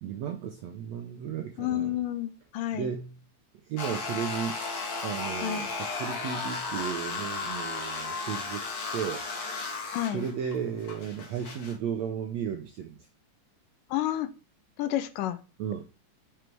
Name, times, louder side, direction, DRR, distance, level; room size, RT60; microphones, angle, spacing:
voice 1, 0.0-2.0 2.7-3.2 3.6-4.6 5.0-9.3 10.1-13.0 15.6-15.8, right 8 dB, 80° right, 1.5 m, -34 dB
voice 2, 1.6-2.9 5.4-5.7 9.9-10.2 13.9-14.3 14.8-15.4, left 13 dB, 80° left, 2.2 m, -30 dB
sound 1, 3.8-11.8, left 4 dB, 55° left, 2.7 m, -35 dB
6.3 x 4.9 x 4.5 m
omnidirectional pair, 3.9 m